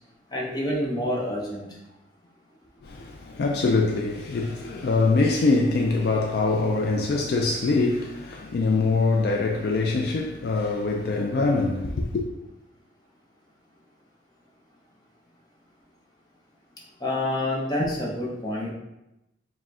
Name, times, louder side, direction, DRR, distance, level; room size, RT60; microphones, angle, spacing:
voice 1, 0.3-1.7 17.0-18.7, left 1 dB, 20° left, 0.7 m, -27 dB
voice 2, 2.8-12.3, left 3 dB, 55° left, 0.3 m, -24 dB
4.8 x 2.2 x 3.5 m
head